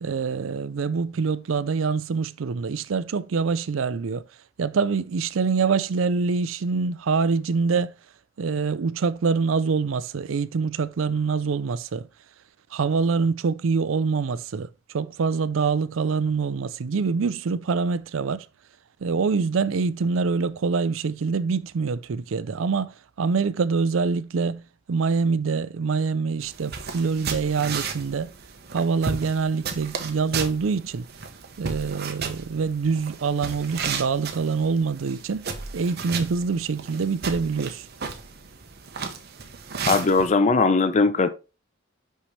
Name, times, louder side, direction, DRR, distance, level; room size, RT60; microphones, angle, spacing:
voice 1, 0.0-4.2 4.6-7.9 8.4-12.1 12.7-14.7 14.9-18.5 19.0-24.6 24.9-28.3 28.7-31.1 31.6-35.5 35.7-37.8, right 5 dB, 80° right, 0.5 m, -25 dB
sound 1, 26.4-40.3, right 5 dB, 55° right, 0.9 m, -34 dB
voice 2, 39.9-41.3, left 4 dB, 35° left, 0.5 m, -19 dB
5.9 x 5.6 x 3.2 m
head